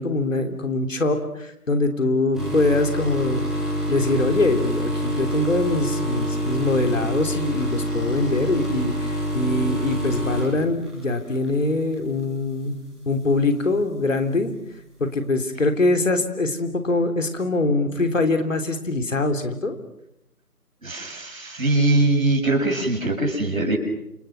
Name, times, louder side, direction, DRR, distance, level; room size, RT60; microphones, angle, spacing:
voice 1, 0.0-3.4 3.9-12.8 13.1-14.5 15.0-19.8, left 2 dB, 55° left, 6 dB, 3.5 m, -23 dB
sound 1, 2.3-11.5 11.9-12.2 13.1-13.2, equal, ahead, 3.2 m, -26 dB
voice 2, 20.8-23.8, right 2 dB, 60° right, 2 dB, 7.3 m, -22 dB
29.0 x 27.0 x 6.1 m, 0.82 s
figure-of-eight pair, 160°, 46 cm